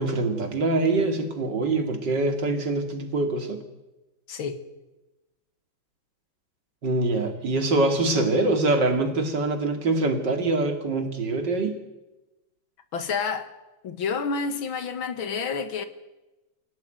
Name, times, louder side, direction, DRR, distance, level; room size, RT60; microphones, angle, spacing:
voice 1, 0.0-3.6 6.8-11.8, right 2 dB, 60° right, 3.2 m, -24 dB
voice 2, 4.3-4.6 12.9-13.5 13.8-15.8, left 5 dB, 90° left, 2.4 m, -29 dB
25.0 x 17.0 x 9.2 m
omnidirectional pair, 2.1 m